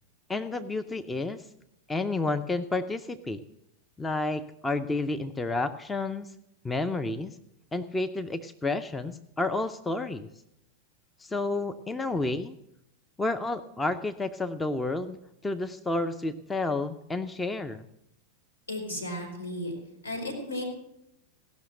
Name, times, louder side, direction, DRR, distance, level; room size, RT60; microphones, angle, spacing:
voice 1, 0.3-1.4 1.9-3.4 4.0-6.3 6.6-7.4 7.7-10.3 11.2-12.5 13.2-15.2 15.4-17.8, left 2 dB, 10° left, 8 dB, 0.6 m, -30 dB
voice 2, 18.7-19.7 20.0-20.7, left 1 dB, 75° left, 0 dB, 4.6 m, -34 dB
16.5 x 6.3 x 8.0 m, 0.80 s
figure-of-eight pair, 90°, 0 cm